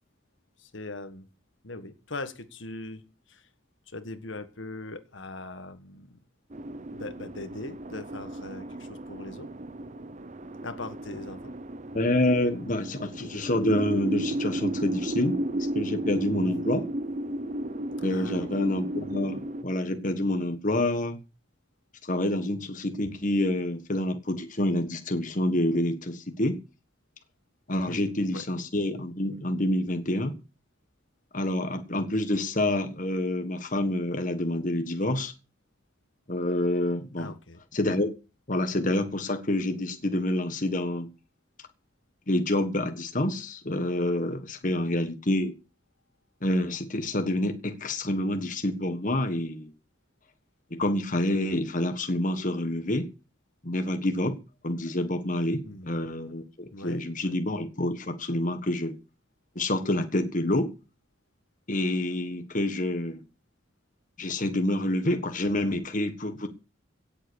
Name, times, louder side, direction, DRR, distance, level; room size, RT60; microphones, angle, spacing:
voice 1, 0.6-1.3 1.6-3.5 3.9-6.2 6.9-9.5 10.6-11.4 16.4-16.7 18.1-18.8 27.8-28.5 37.2-37.6 44.6-45.0 55.6-56.1 56.7-57.4, left 2 dB, 75° left, 9 dB, 1.6 m, -41 dB
sound 1, 6.5-19.6, right 1 dB, 40° right, 0.8 m, -34 dB
voice 2, 11.9-16.8 18.0-21.2 22.0-26.6 27.7-30.4 31.3-35.3 36.3-37.3 37.7-38.1 38.5-41.1 42.3-45.5 46.4-49.7 50.7-53.1 53.6-54.4 54.6-58.9 59.5-60.7 61.7-63.2 64.2-66.5, left 1 dB, 40° left, 7 dB, 1.5 m, -27 dB
17.0 x 7.9 x 6.4 m, 0.33 s
head